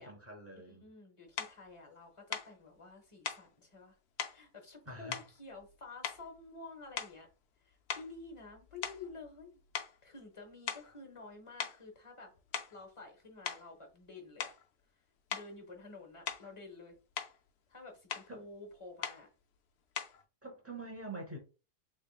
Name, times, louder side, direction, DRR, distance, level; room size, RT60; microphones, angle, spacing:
voice 1, 0.0-0.9 4.9-5.2 18.3-18.4 20.4-21.4, right 2 dB, 15° right, 0.5 m, -45 dB
voice 2, 0.6-4.0 4.2-7.3 7.6-9.6 10.0-12.3 12.7-14.5 15.3-17.0 17.7-19.3, left 3 dB, 35° left, 0.5 m, -51 dB
sound 1, 1.4-1.6 2.3-2.5 3.2-3.5 4.2-4.4 5.1-5.7 6.0-6.4 6.9-7.3 7.9-9.5 9.7-10.0 10.7-10.9 11.6-11.8 12.3-12.8 13.4-13.7 14.4-14.6 15.3-15.5 16.3-16.5 16.9-17.4 18.1-18.3 19.0-19.2 19.9-20.2, left 8 dB, 85° left, 0.5 m, -40 dB
3.6 x 3.4 x 2.3 m
omnidirectional pair, 1.7 m